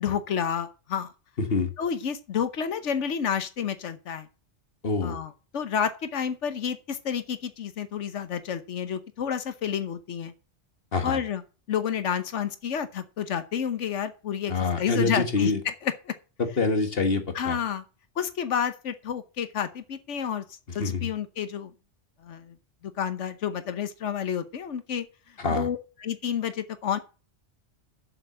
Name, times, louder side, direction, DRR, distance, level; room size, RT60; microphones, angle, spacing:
voice 1, 0.0-1.1 1.8-4.3 5.0-10.3 11.0-11.4 11.7-16.1 17.3-17.8 18.2-20.4 20.7-21.7 22.2-22.6 22.8-25.1 25.5-27.0, left 8 dB, 90° left, 1.3 m, -30 dB
voice 2, 1.4-1.7 4.8-5.2 10.9-11.2 14.5-15.6 16.4-17.6 20.8-21.1 25.4-25.7, left 3 dB, 55° left, 1.8 m, -26 dB
7.6 x 7.1 x 7.7 m
omnidirectional pair, 1.2 m